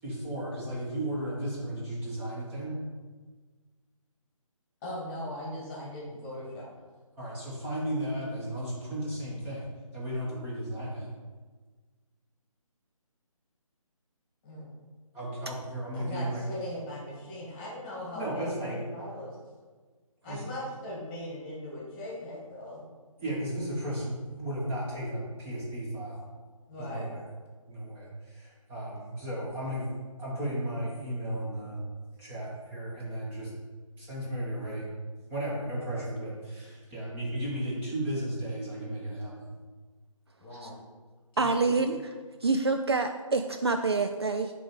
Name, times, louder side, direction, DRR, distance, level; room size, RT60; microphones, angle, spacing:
voice 1, 0.0-2.8 7.2-11.1 15.1-16.4 18.1-18.8 20.3-20.4 23.2-26.3 26.8-27.2 27.7-29.9 30.2-31.8 32.2-33.5 34.0-34.9 35.3-39.6 40.5-40.6, right 1 dB, 10° right, -7 dB, 1.3 m, -34 dB
voice 2, 4.8-6.7 14.4-14.7 15.9-18.5 18.9-19.3 20.2-22.8 26.7-27.1 40.4-40.7 41.3-41.7, left 1 dB, 15° left, -5 dB, 1.7 m, -39 dB
voice 3, 41.4-42.0 42.4-44.5, right 3 dB, 50° right, 6 dB, 0.4 m, -26 dB
7.7 x 3.4 x 5.0 m, 1.4 s
figure-of-eight pair, 150°, 18 cm